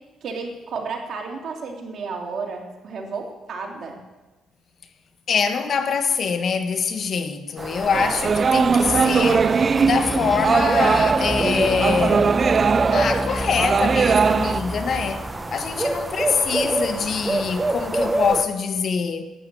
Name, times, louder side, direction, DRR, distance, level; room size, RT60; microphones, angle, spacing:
voice 1, 0.2-4.0, right 4 dB, 60° right, 3.0 m, -32 dB
voice 2, 5.3-12.4 12.9-15.2 15.5-19.2, left 6 dB, 55° left, 1.3 m, -24 dB
sound 1, 7.6-18.4, right 2 dB, 20° right, 1.1 m, -28 dB
sound 2, 7.9-14.6, right 5 dB, 40° right, 0.3 m, -20 dB
sound 3, 8.9-15.4, equal, 5° left, 0.6 m, -30 dB
12.0 x 8.8 x 9.0 m
cardioid pair, 90°, 0 cm